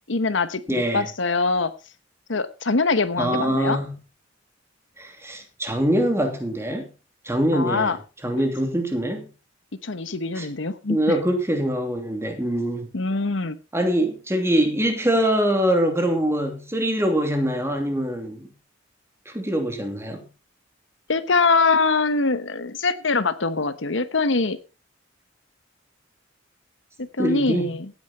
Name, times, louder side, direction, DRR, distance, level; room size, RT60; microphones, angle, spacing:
voice 1, 0.1-1.7 2.3-3.8 7.5-8.0 9.8-11.0 12.9-13.6 21.1-24.6 27.0-27.9, left 3 dB, 70° left, 1.1 m, -23 dB
voice 2, 0.7-1.1 3.2-4.0 5.0-6.9 7.2-8.0 8.2-9.3 10.3-10.5 10.9-12.9 13.7-18.5 19.3-20.2 27.2-27.7, right 1 dB, 15° right, 2.8 m, -23 dB
16.5 x 9.4 x 4.3 m
head